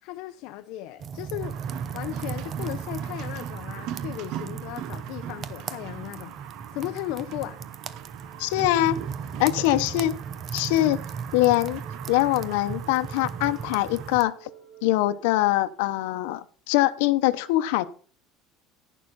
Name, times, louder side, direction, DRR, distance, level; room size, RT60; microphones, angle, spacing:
voice 1, 0.0-1.5 1.9-7.6, left 15 dB, 60° left, 0.8 m, -36 dB
sound 1, 1.0-14.2, right 6 dB, 25° right, 0.8 m, -36 dB
sound 2, 1.4-14.2, right 11 dB, 50° right, 1.1 m, -41 dB
sound 3, 6.3-15.4, right 7 dB, 10° left, 4.6 m, -53 dB
voice 2, 8.4-9.0 9.4-10.2 10.5-11.0 11.3-11.8 12.1-14.3 14.8-17.9, left 16 dB, 90° left, 0.9 m, -23 dB
11.0 x 11.0 x 4.2 m
cardioid pair, 175°, 0 cm